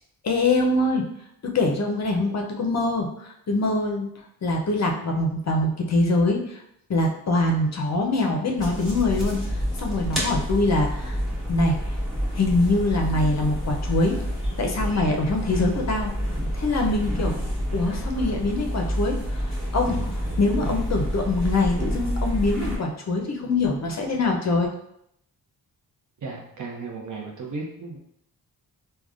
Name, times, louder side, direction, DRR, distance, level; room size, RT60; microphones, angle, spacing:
voice 1, 0.2-1.1 1.4-4.1 4.4-6.6 6.9-11.2 11.5-11.8 12.3-14.2 14.6-16.1 16.5-17.3 17.7-24.7, left 2 dB, 45° left, 1 dB, 0.5 m, -24 dB
sound 1, 8.6-22.8, equal, ahead, 1.2 m, -28 dB
voice 2, 26.2-28.0, right 3 dB, 50° right, 0 dB, 0.8 m, -35 dB
3.4 x 2.2 x 2.4 m, 0.75 s
cardioid pair, 75°, 40 cm